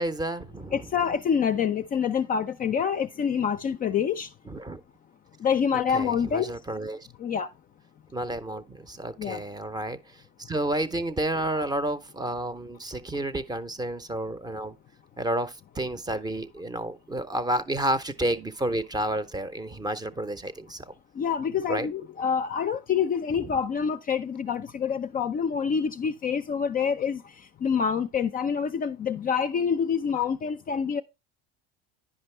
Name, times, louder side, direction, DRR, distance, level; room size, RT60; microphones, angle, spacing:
voice 1, 0.0-0.9 4.5-4.8 5.7-7.1 8.1-14.7 15.2-20.9 21.7-21.9, right 1 dB, 15° right, 0.6 m, -31 dB
voice 2, 0.7-4.3 5.4-6.5 7.2-7.5 9.2-9.4 21.1-31.0, left 7 dB, 30° left, 0.4 m, -27 dB
9.7 x 5.2 x 3.2 m
supercardioid pair, 100°, 29 cm